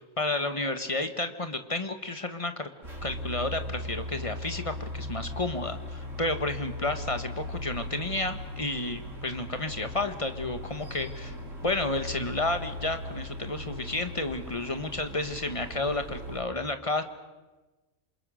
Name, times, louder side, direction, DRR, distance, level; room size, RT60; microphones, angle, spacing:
voice 1, 0.2-2.7 3.0-11.3 11.6-17.0, left 2 dB, 25° left, 8 dB, 1.5 m, -31 dB
sound 1, 2.8-16.4, left 1 dB, 60° right, 5.7 m, -38 dB
28.0 x 26.5 x 6.4 m, 1.2 s
omnidirectional pair, 1.5 m